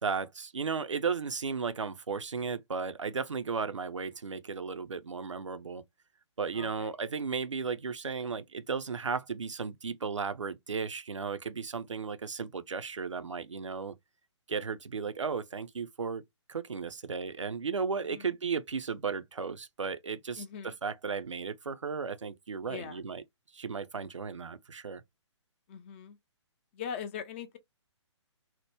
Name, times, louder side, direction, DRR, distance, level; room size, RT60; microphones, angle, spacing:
voice 1, 0.0-5.8 6.4-13.9 14.5-16.2 16.5-23.2 23.5-25.0, right 5 dB, 80° right, 0.4 m, -35 dB
voice 2, 6.5-6.9 18.1-18.3 20.4-20.7 22.7-23.0 25.7-26.2 26.7-27.6, left 7 dB, 25° left, 0.4 m, -41 dB
2.8 x 2.1 x 3.3 m
figure-of-eight pair, 130°, 16 cm